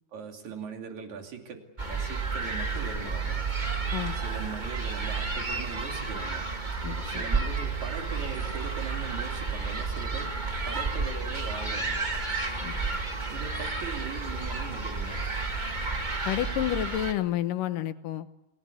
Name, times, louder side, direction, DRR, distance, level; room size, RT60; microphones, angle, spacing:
voice 1, 0.1-3.4 4.1-6.5 7.0-10.3 10.6-12.0 13.3-15.2, right 6 dB, 50° right, 3 dB, 3.9 m, -40 dB
sound 1, 1.8-17.1, right 4 dB, 35° right, 0.7 m, -31 dB
voice 2, 6.8-7.2 12.6-12.8 16.3-18.3, left 12 dB, 70° left, 11 dB, 2.5 m, -30 dB
28.0 x 18.5 x 8.4 m, 0.96 s
omnidirectional pair, 4.4 m